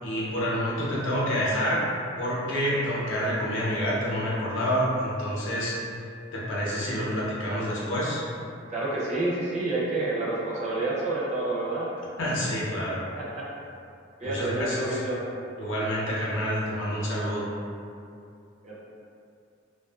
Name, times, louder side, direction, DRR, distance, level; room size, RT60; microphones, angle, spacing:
voice 1, 0.0-1.8 2.2-5.8 6.3-8.2 12.2-13.0 14.2-15.0 15.6-17.5, equal, 75° left, -6 dB, 0.6 m, -28 dB
voice 2, 8.7-11.9 13.2-13.5 14.2-15.2 18.6-18.8, right 2 dB, 35° right, -7 dB, 0.5 m, -29 dB
2.5 x 2.3 x 2.3 m, 2.5 s
head